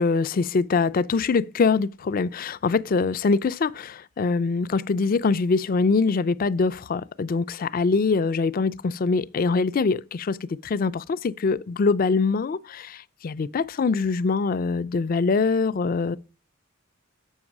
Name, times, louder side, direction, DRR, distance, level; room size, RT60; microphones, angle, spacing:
voice 1, 0.0-16.2, left 4 dB, 40° left, 0.4 m, -23 dB
7.8 x 6.4 x 5.9 m
head